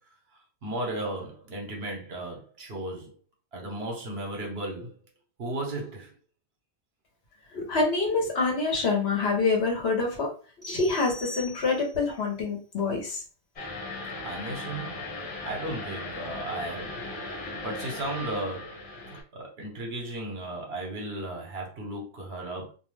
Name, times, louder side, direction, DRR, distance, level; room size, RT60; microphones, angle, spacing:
voice 1, 0.6-3.2 3.5-5.0 5.4-6.1 14.2-15.1 15.4-17.0 17.6-22.7, right 1 dB, 65° right, 1.0 m, -35 dB
voice 2, 7.5-10.3 10.7-13.2, left 3 dB, 65° left, 1.1 m, -26 dB
sound 1, 10.6-12.1, equal, 20° left, 0.7 m, -43 dB
sound 2, 13.6-19.2, left 2 dB, 40° left, 1.2 m, -37 dB
2.5 x 2.1 x 3.1 m
omnidirectional pair, 1.2 m